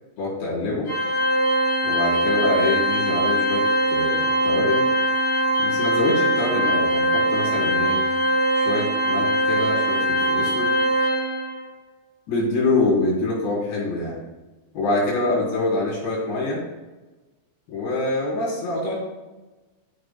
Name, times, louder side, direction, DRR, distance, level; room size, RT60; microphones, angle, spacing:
voice 1, 0.2-0.9 1.8-3.6 3.9-4.9 5.6-8.0 8.6-10.7 12.3-14.2 14.7-16.6 17.7-19.0, left 2 dB, 85° left, -6 dB, 6.0 m, -25 dB
Organ, 0.9-11.6, right 1 dB, 50° left, 4.3 m, -21 dB
15.0 x 9.0 x 2.3 m, 1.1 s
omnidirectional pair, 4.8 m